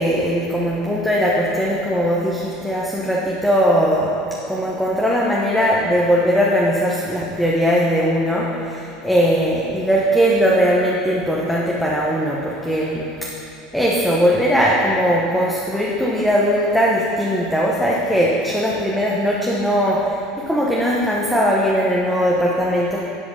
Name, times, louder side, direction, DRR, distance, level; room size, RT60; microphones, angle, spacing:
voice 1, 0.0-4.2 4.5-13.3 13.7-23.1, equal, ahead, -5 dB, 1.0 m, -19 dB
10.5 x 4.9 x 5.4 m, 2.7 s
supercardioid pair, 105°, 0 cm